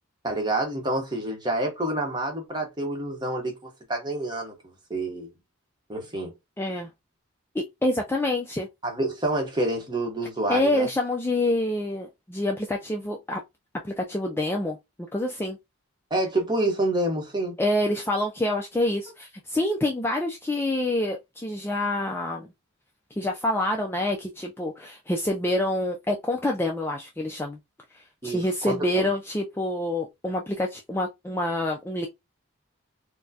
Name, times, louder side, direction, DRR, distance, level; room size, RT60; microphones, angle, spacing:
voice 1, 0.2-3.5 3.9-4.5 4.9-5.3 5.9-6.3 8.8-10.9 16.1-17.5 28.2-29.1, right 1 dB, 20° right, 0.8 m, -27 dB
voice 2, 6.6-6.9 7.5-8.7 10.5-13.4 13.8-14.8 15.1-15.6 17.6-22.5 23.2-27.6 28.2-32.1, left 1 dB, 10° left, 0.3 m, -27 dB
4.3 x 2.1 x 2.7 m
head